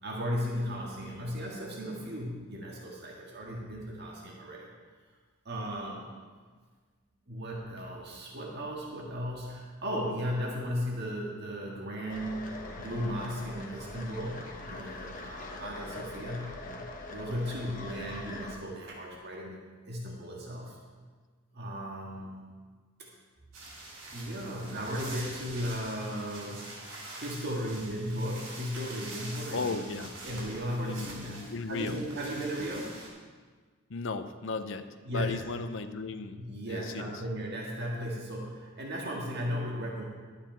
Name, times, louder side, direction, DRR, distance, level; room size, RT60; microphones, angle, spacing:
voice 1, 0.0-4.7 5.5-6.1 7.3-12.5 12.8-16.6 17.1-20.8 21.5-22.5 23.0-23.1 24.1-26.7 27.1-29.7 30.2-33.0 35.0-35.4 36.4-40.0, equal, 55° right, -2 dB, 1.7 m, -36 dB
sound 1, 12.1-18.6, left 2 dB, 40° left, 1.1 m, -42 dB
sound 2, 23.5-33.1, right 2 dB, 85° right, 3.5 m, -45 dB
voice 2, 29.5-30.1 30.8-32.0 32.6-32.7 33.9-36.4 36.7-37.1, left 4 dB, 65° left, 10 dB, 0.6 m, -36 dB
11.5 x 8.9 x 4.5 m, 1.5 s
head